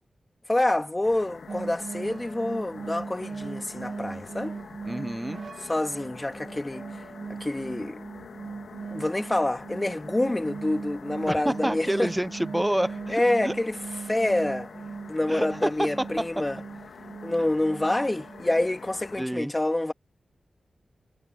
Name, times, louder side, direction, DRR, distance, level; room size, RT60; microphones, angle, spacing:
voice 1, 0.5-4.6 5.6-6.9 7.4-8.0 8.9-12.1 13.1-13.8 14.1-14.7 15.1-16.6 17.2-19.9, left 1 dB, 20° left, 2.5 m, -27 dB
sound 1, 1.0-19.3, left 6 dB, 80° left, 1.8 m, -46 dB
sound 2, 1.5-19.1, right 5 dB, 60° right, 0.8 m, -39 dB
voice 2, 4.9-5.4 11.3-13.5 15.3-16.3 19.2-19.5, right 1 dB, 10° right, 0.5 m, -28 dB
cardioid pair, 60°, 0 cm